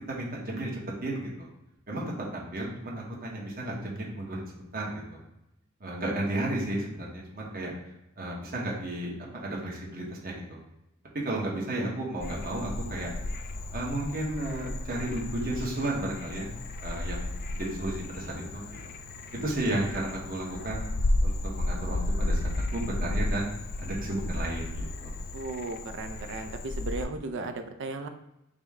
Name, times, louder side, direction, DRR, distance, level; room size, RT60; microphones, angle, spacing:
voice 1, 0.1-0.7 1.0-1.5 1.9-5.2 5.8-7.7 8.2-10.6 11.1-13.1 13.7-16.5 16.8-18.7 19.4-20.8 21.2-22.4 22.7-23.5 23.8-25.1, right 1 dB, 45° right, -3 dB, 1.0 m, -33 dB
Frog, 12.2-27.1, left 1 dB, 45° left, 0.3 m, -33 dB
voice 2, 25.3-28.1, right 3 dB, 60° right, 7 dB, 0.4 m, -36 dB
5.0 x 2.1 x 3.5 m, 0.88 s
head